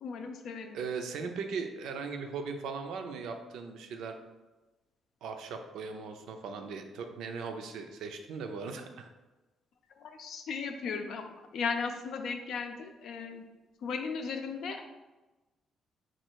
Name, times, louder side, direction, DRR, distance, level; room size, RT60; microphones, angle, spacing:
voice 1, 0.0-0.8 10.0-13.4 13.8-14.8, left 5 dB, 70° left, 5 dB, 0.5 m, -36 dB
voice 2, 0.7-4.2 5.2-9.1, right 5 dB, 85° right, 5 dB, 0.4 m, -38 dB
4.3 x 2.4 x 4.5 m, 1.1 s
cardioid pair, 90°, 0 cm